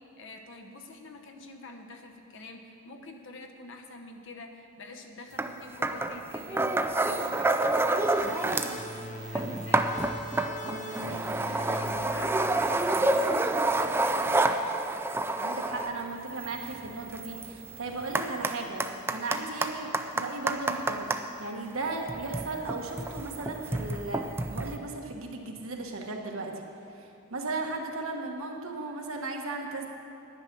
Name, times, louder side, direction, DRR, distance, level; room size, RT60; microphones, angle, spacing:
voice 1, 0.0-8.9 9.3-9.9 11.3-14.5, left 2 dB, 60° left, 4 dB, 1.0 m, -45 dB
sound 1, 5.4-5.5 5.8-8.8 9.2-21.2 22.0-24.8, right 2 dB, 10° right, 0.4 m, -29 dB
sound 2, 8.0-13.3, left 1 dB, 35° left, 0.8 m, -41 dB
voice 2, 10.6-11.8 15.4-26.5 26.9-29.9, right 3 dB, 70° right, 1 dB, 1.3 m, -36 dB
10.5 x 9.7 x 6.1 m, 2.8 s
head